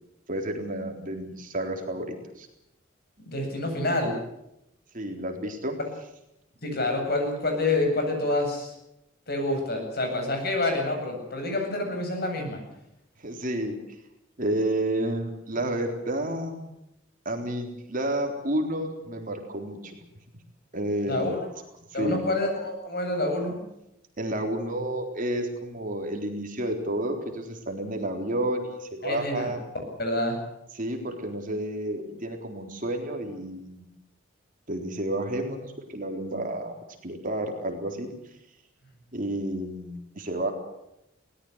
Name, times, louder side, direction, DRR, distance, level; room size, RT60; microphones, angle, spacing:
voice 1, 0.3-2.5 4.9-5.8 13.2-13.8 14.4-16.6 17.3-19.9 20.7-21.4 21.9-22.3 24.2-29.6 30.7-33.9 34.7-36.7 37.0-38.1 39.1-40.5, right 1 dB, 45° right, 3 dB, 3.8 m, -30 dB
voice 2, 3.3-4.1 6.6-8.7 9.3-12.6 21.1-21.4 21.9-23.6 29.0-29.5 30.0-30.4, left 2 dB, 50° left, 3 dB, 8.0 m, -27 dB
22.5 x 18.5 x 8.1 m, 0.84 s
head